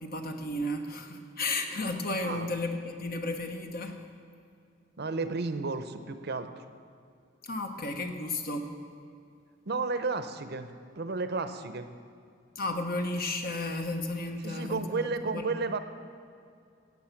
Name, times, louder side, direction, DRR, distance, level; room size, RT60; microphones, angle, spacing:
voice 1, 0.0-4.0 7.4-8.8 12.6-15.1 15.3-15.5, left 2 dB, 50° left, 5 dB, 1.2 m, -33 dB
voice 2, 5.0-6.6 9.6-11.9 14.4-15.8, right 3 dB, 55° right, 10 dB, 0.7 m, -32 dB
15.5 x 8.9 x 5.9 m, 2.4 s
head